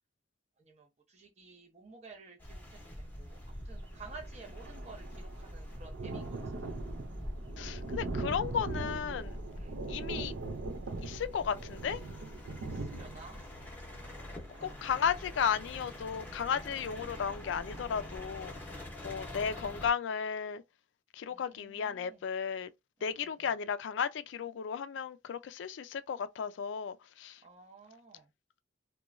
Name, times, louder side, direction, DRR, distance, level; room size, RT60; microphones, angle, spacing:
voice 1, 0.6-6.4 9.5-9.8 12.6-13.4 14.3-14.8 16.6-16.7 18.8-19.2 21.3-22.2 23.0-23.5 27.4-28.3, right 4 dB, 35° right, 0.6 m, -53 dB
sound 1, 2.4-19.9, equal, 10° left, 0.7 m, -45 dB
Thunder, 3.5-3.6 3.8-16.4 16.9-17.0 17.3-17.4, right 3 dB, 75° right, 0.5 m, -41 dB
voice 2, 7.6-9.4 9.9-10.3 11.0-12.0 14.6-18.5 19.0-20.6 21.1-22.7 23.0-27.4, left 7 dB, 70° left, 0.3 m, -34 dB
2.9 x 2.2 x 2.4 m
head